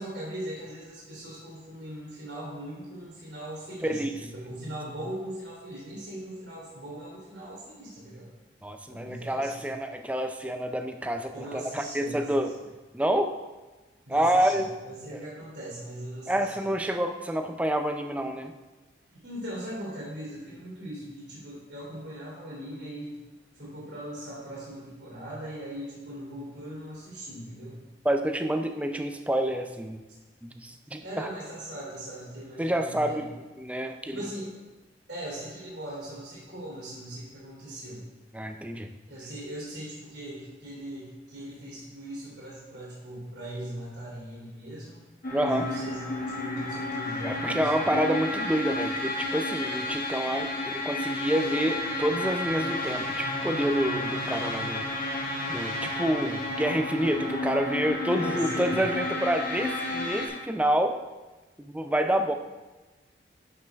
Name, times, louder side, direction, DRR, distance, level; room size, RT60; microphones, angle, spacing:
voice 1, 0.0-8.3 8.9-9.6 11.3-12.6 14.1-16.7 19.1-23.2 23.5-27.9 31.0-33.2 34.1-34.6 35.1-38.1 39.1-45.0 45.4-48.0 58.1-58.8, right 1 dB, 80° right, -7 dB, 2.7 m, -39 dB
voice 2, 8.6-12.5 12.9-13.4 14.1-14.7 15.1-15.2 16.3-18.5 28.0-30.0 30.4-31.3 32.6-33.3 33.6-34.2 38.3-38.9 45.3-45.7 47.2-54.9 55.5-61.0 61.6-62.3, right 1 dB, 10° right, 6 dB, 0.4 m, -28 dB
sound 1, 45.2-60.3, left 2 dB, 50° left, 1.3 m, -32 dB
11.0 x 5.3 x 3.5 m, 1.2 s
head